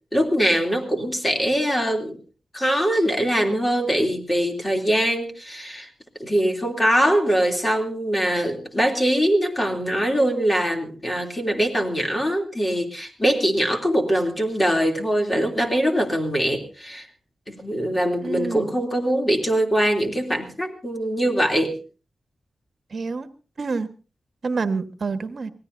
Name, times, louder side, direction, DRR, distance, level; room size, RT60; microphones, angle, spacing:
voice 1, 0.1-2.2 2.5-5.9 6.2-17.1 17.5-21.8, equal, 20° left, 3 dB, 3.0 m, -22 dB
voice 2, 18.2-18.7 22.9-23.3 23.6-23.9 24.4-25.5, right 4 dB, 50° right, 10 dB, 1.4 m, -27 dB
25.0 x 17.5 x 2.7 m, 0.35 s
wide cardioid pair, 130°, 0 cm